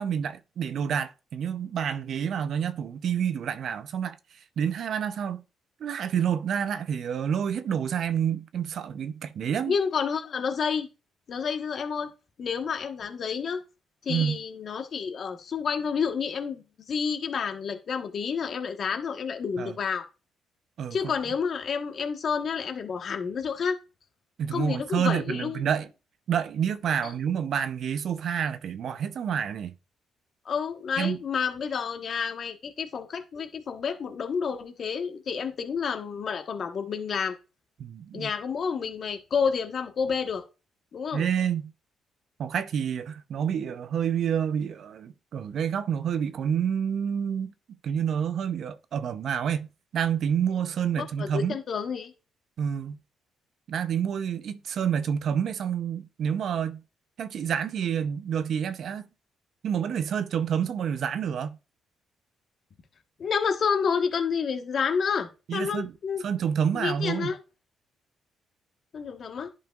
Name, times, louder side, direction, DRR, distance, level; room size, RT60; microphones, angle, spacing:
voice 1, 0.0-5.4 5.8-9.8 14.1-14.4 19.6-19.8 20.8-21.1 24.4-25.9 26.3-29.7 31.0-31.2 37.8-38.3 41.1-41.7 42.4-47.5 47.8-49.7 49.9-51.6 52.6-53.0 53.7-56.8 57.2-59.1 59.6-61.6 65.5-65.9 66.2-67.4, right 8 dB, 65° right, 0.6 m, -28 dB
voice 2, 9.7-10.9 11.3-12.1 12.4-13.6 14.0-20.0 20.9-23.8 24.5-25.6 27.0-27.1 30.4-37.3 38.1-40.4 40.9-41.2 51.0-52.1 63.2-66.2 66.7-67.4 68.9-69.5, left 6 dB, 55° left, 1.3 m, -29 dB
10.5 x 5.5 x 2.5 m
cardioid pair, 90°, 0 cm